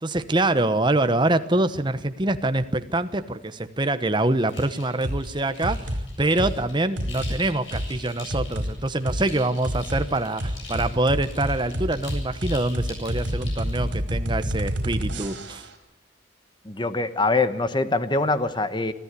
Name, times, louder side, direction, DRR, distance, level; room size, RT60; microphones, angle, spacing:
voice 1, 0.0-5.9 6.2-15.6, right 2 dB, 25° right, 10 dB, 1.0 m, -25 dB
sound 1, 4.4-13.9, left 3 dB, 85° left, 8.0 m, -44 dB
sound 2, 5.0-5.2 5.6-6.0 6.4-6.6 7.0-7.4 7.7-7.9 8.3-8.7 9.1-9.2 9.6-10.0 10.4-15.7, equal, 75° right, 4.9 m, -28 dB
voice 2, 16.6-18.9, left 3 dB, 25° left, 12 dB, 1.2 m, -23 dB
25.0 x 14.0 x 8.3 m, 0.95 s
head